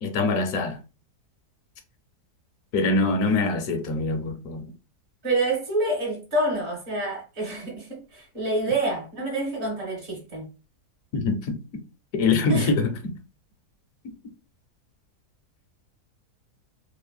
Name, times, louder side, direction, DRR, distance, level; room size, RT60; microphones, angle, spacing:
voice 1, 0.0-0.8 2.7-4.7 11.1-11.8 12.1-13.1, left 3 dB, 70° left, 0.9 m, -24 dB
voice 2, 5.2-10.5 12.5-12.7, right 2 dB, 45° right, 1.4 m, -27 dB
3.2 x 2.0 x 2.2 m
omnidirectional pair, 1.7 m